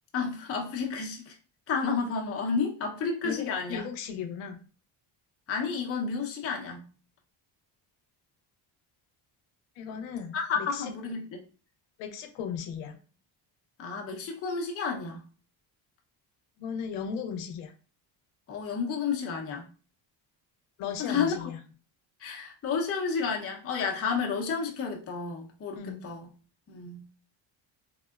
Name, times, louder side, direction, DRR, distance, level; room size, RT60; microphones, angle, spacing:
voice 1, 0.1-1.3 1.7-3.8 5.5-6.9 10.3-11.4 13.8-15.3 18.5-19.7 21.0-21.5 22.2-26.3 26.7-27.0, left 5 dB, 30° left, 0 dB, 0.6 m, -31 dB
voice 2, 3.2-4.6 9.8-10.9 12.0-13.0 16.6-17.7 20.8-21.6 25.7-26.1, left 7 dB, 90° left, 8 dB, 0.7 m, -36 dB
3.6 x 2.0 x 2.3 m, 0.37 s
cardioid pair, 95°, 49 cm